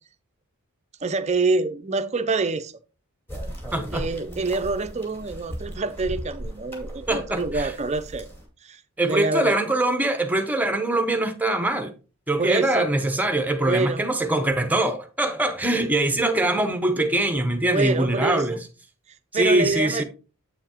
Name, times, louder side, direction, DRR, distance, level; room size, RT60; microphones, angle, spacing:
voice 1, 1.0-2.7 3.9-8.3 8.6-9.6 12.4-12.9 13.6-14.0 17.7-18.6 19.3-20.0, right 3 dB, 30° right, 0.5 m, -26 dB
sound 1, 3.3-8.4, equal, 10° left, 2.2 m, -36 dB
voice 2, 3.7-4.0 7.1-7.7 9.0-11.9 12.3-18.6 19.3-20.0, right 1 dB, 5° right, 0.8 m, -23 dB
7.8 x 7.0 x 2.9 m
head